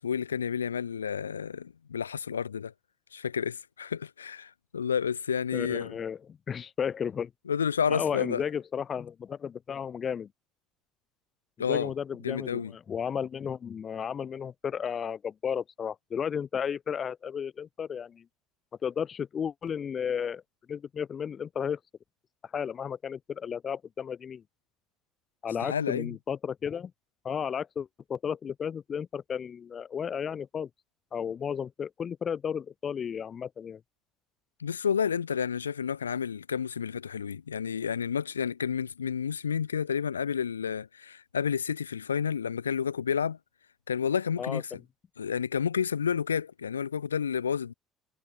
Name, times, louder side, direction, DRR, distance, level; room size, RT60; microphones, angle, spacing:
voice 1, 0.0-2.7 3.1-5.9 7.5-8.4 11.6-11.9 12.2-12.7 25.6-26.2 34.6-43.4 43.9-44.7 45.2-47.7, left 7 dB, 80° left, 2.7 m, -30 dB
voice 2, 5.5-6.2 6.5-7.3 7.9-10.3 11.7-18.2 18.8-20.4 20.7-21.8 22.4-24.4 25.4-26.9 27.2-30.7 31.1-33.8 44.4-44.6, left 7 dB, 40° left, 0.9 m, -33 dB
figure-of-eight pair, 55°, 0 cm